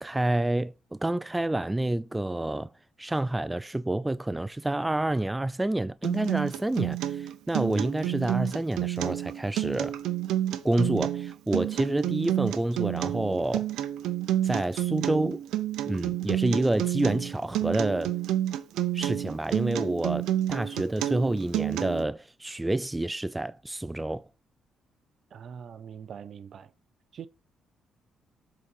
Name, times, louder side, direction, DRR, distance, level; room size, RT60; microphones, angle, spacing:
voice 1, 0.0-2.7 3.0-10.0 10.6-13.7 14.4-15.4 15.9-18.2 18.9-24.3, right 1 dB, 10° right, 0.3 m, -28 dB
Acoustic guitar, 6.0-22.0, right 12 dB, 85° right, 0.6 m, -29 dB
voice 2, 25.3-26.7 27.1-27.3, right 7 dB, 55° right, 0.7 m, -42 dB
7.6 x 4.0 x 5.4 m
cardioid pair, 90°, 0 cm